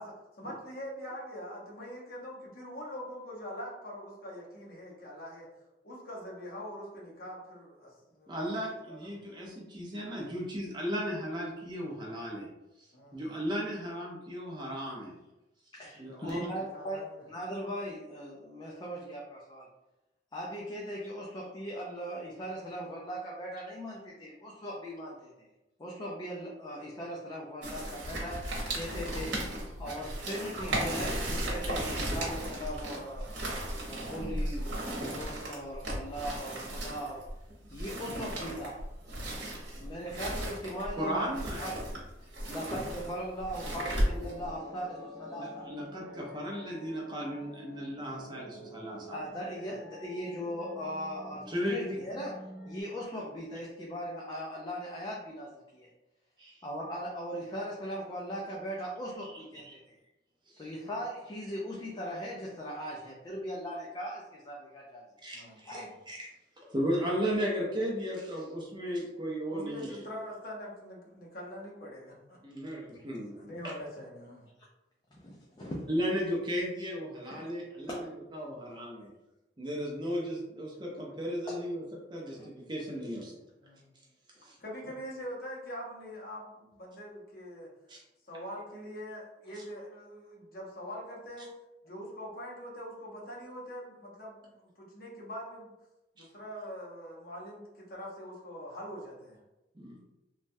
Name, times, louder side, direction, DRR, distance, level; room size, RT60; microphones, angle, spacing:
voice 1, 0.0-5.5 5.8-9.1 12.9-13.3 15.8-16.3 16.7-17.2 60.6-61.0 65.3-65.9 69.5-72.4 73.4-74.5 83.6-83.8 84.4-87.7 88.2-91.5 91.8-95.7 96.2-99.4, equal, 55° left, -4 dB, 0.9 m, -43 dB
voice 2, 8.3-12.5 13.1-15.1 16.0-16.4 41.0-41.8 42.5-42.6 45.3-49.2 51.5-51.9 56.4-56.6 59.7-59.8 65.2-66.3 66.7-70.0 72.4-73.5 75.9-79.1 79.6-81.8 82.1-83.3 84.4-84.6 87.9-88.0 96.2-96.3 99.7-100.0, equal, 25° right, -2 dB, 0.6 m, -35 dB
voice 3, 15.7-19.7 20.3-25.5 25.8-29.3 29.8-33.3 33.9-37.2 37.7-38.8 39.8-41.3 41.6-41.7 42.2-45.7 49.1-52.4 52.7-55.9 56.6-59.9 60.6-65.0 65.7-65.9 75.1-75.9 77.9-78.0 81.5-81.6 82.4-82.5, equal, 25° left, -4 dB, 0.4 m, -39 dB
sound 1, 27.6-44.5, right 1 dB, 80° right, 0.9 m, -35 dB
sound 2, 43.5-52.8, equal, 65° right, 1.2 m, -48 dB
3.1 x 2.2 x 2.6 m, 0.96 s
head